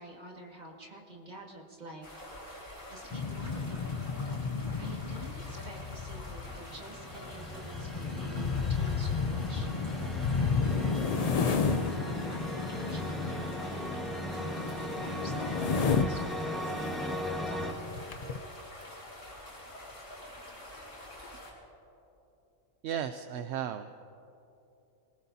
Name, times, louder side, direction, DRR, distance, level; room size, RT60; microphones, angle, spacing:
voice 1, 0.0-2.1 2.9-4.0 4.8-9.7 10.3-17.2, right 1 dB, 30° right, -1 dB, 2.0 m, -48 dB
sound 1, 2.0-21.5, left 1 dB, 45° left, 5.0 m, -47 dB
sound 2, 3.1-16.3 16.9-17.2 17.4-17.5 17.8-18.4, left 5 dB, 70° left, 0.3 m, -32 dB
sound 3, 6.1-17.7, equal, ahead, 1.3 m, -38 dB
voice 2, 22.8-24.0, right 9 dB, 65° right, 9 dB, 0.7 m, -35 dB
26.0 x 19.5 x 2.8 m, 2.8 s
omnidirectional pair, 1.4 m